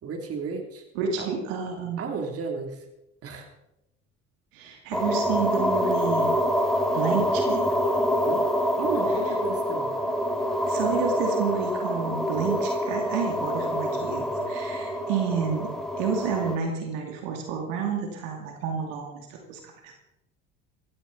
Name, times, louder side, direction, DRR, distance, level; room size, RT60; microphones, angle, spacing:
voice 1, 0.0-0.8 1.2-1.3 2.0-2.8 3.2-3.5 8.3-8.5 8.8-9.9, right 5 dB, 50° right, 3 dB, 3.0 m, -33 dB
voice 2, 0.9-2.0 4.5-6.3 6.9-7.6 9.3-9.4 10.7-15.7 16.0-20.0, right 6 dB, 85° right, 2 dB, 2.5 m, -30 dB
sound 1, 4.9-16.6, equal, ahead, 2.1 m, -26 dB
15.0 x 15.0 x 4.0 m, 0.89 s
supercardioid pair, 80°, 29 cm